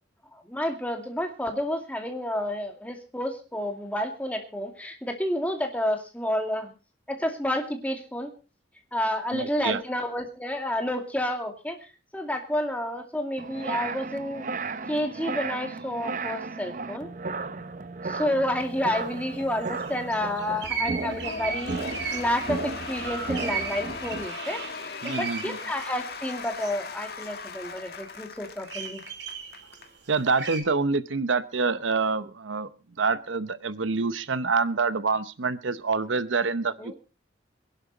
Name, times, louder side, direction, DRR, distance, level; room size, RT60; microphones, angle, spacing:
voice 1, 0.3-6.7 7.1-8.3 8.9-14.5 14.9-17.1 18.0-21.7 22.1-29.0 36.8-36.9, left 1 dB, 10° left, 4 dB, 2.2 m, -30 dB
voice 2, 9.3-9.8 25.0-25.6 30.1-32.7 33.0-36.9, right 4 dB, 85° right, 15 dB, 0.8 m, -26 dB
sound 1, 13.4-24.3, right 3 dB, 45° right, 0.7 m, -35 dB
sound 2, 18.6-18.7 18.9-26.7 27.2-27.4 27.9-28.2 28.6-30.6, right 6 dB, 65° right, 2.8 m, -37 dB
Cheering / Applause / Crowd, 21.2-29.9, left 4 dB, 55° left, 1.6 m, -38 dB
23.5 x 11.0 x 4.0 m, 0.34 s
head